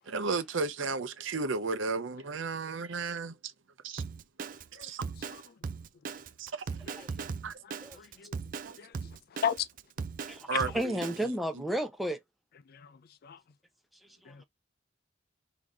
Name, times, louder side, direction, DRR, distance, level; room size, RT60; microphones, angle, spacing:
voice 1, 0.1-3.3 3.8-4.0 4.7-5.0 6.4-6.6 7.4-7.5 8.6-8.8 10.5-10.9, right 4 dB, 85° right, 0.7 m, -33 dB
Drum kit, 4.0-11.2, right 5 dB, 45° right, 0.4 m, -38 dB
voice 2, 8.0-8.4 8.8-8.9 9.4-9.7 10.5-10.6 13.2-13.4 14.3-14.5, left 8 dB, 55° left, 0.4 m, -32 dB
voice 3, 10.3-12.2 14.2-14.5, right 1 dB, ahead, 0.7 m, -33 dB
3.7 x 2.9 x 3.6 m
head